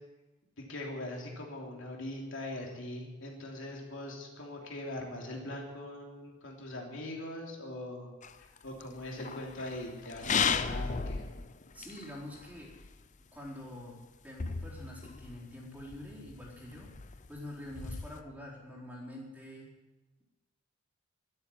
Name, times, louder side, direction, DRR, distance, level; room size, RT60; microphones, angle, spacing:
voice 1, 0.7-8.1 8.6-11.2, left 1 dB, 65° left, -1 dB, 3.3 m, -41 dB
sound 1, 8.2-12.9 13.5-13.6 13.8-13.9 14.4-18.2, left 6 dB, 35° left, 0.6 m, -36 dB
voice 2, 11.7-12.7 13.3-14.0 14.2-16.9 17.3-19.7, left 1 dB, 10° right, -5 dB, 4.2 m, -46 dB
12.0 x 11.5 x 9.7 m, 1.2 s
head